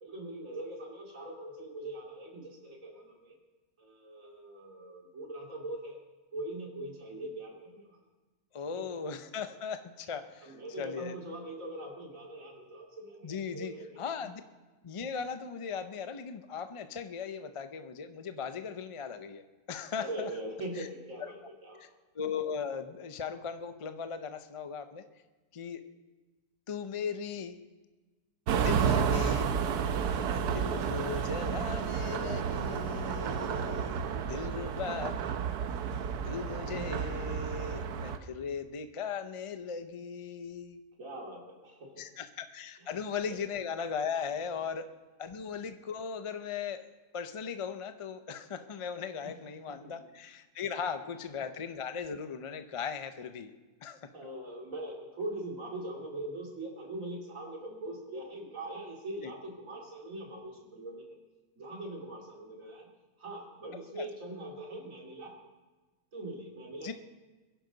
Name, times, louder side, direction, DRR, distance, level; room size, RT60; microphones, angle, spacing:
voice 1, 0.0-3.4 3.8-6.0 6.3-8.0 8.7-9.1 10.4-14.0 20.0-21.9 41.0-41.9 49.2-49.3 54.1-61.2 61.6-62.9 63.2-65.3 66.1-66.9, right 1 dB, 55° right, -1 dB, 2.9 m, -42 dB
voice 2, 8.5-11.1 13.2-14.4 14.8-19.4 19.7-20.3 20.8-20.9 21.8-21.9 22.1-25.0 25.5-25.8 26.7-27.6 28.5-29.4 29.7-29.9 30.3-35.2 36.2-40.8 42.0-44.9 45.2-46.8 47.1-53.5 53.8-54.1 59.2-59.3 64.0-64.1 66.8-66.9, left 6 dB, 40° left, 9 dB, 0.4 m, -38 dB
sound 1, 28.5-38.2, right 7 dB, 85° right, 1.4 m, -31 dB
22.5 x 11.0 x 4.0 m, 1.2 s
omnidirectional pair, 1.6 m